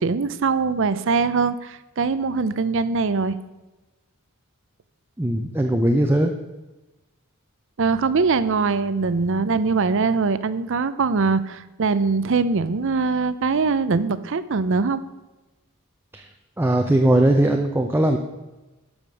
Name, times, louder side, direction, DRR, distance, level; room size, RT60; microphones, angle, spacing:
voice 1, 0.0-3.4 7.8-15.0, right 4 dB, 60° right, 14 dB, 0.6 m, -22 dB
voice 2, 5.2-6.3 16.1-16.2 16.6-18.2, right 1 dB, 10° right, 3 dB, 0.6 m, -19 dB
12.5 x 5.1 x 6.3 m, 1.1 s
head